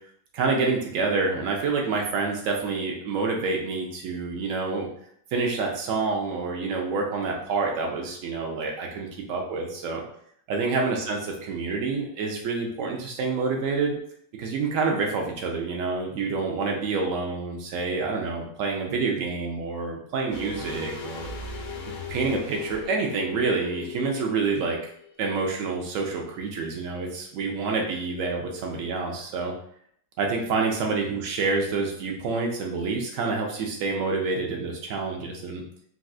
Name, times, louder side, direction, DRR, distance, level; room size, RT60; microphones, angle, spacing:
voice 1, 0.3-4.9 5.3-10.0 10.5-14.0 14.4-21.3 22.1-24.8 25.2-29.5 30.2-35.6, right 4 dB, 85° right, 0 dB, 0.7 m, -27 dB
sound 1, 20.3-25.2 25.4-25.5, left 4 dB, 75° left, 1.2 m, -38 dB
3.9 x 2.3 x 2.3 m, 0.66 s
omnidirectional pair, 1.9 m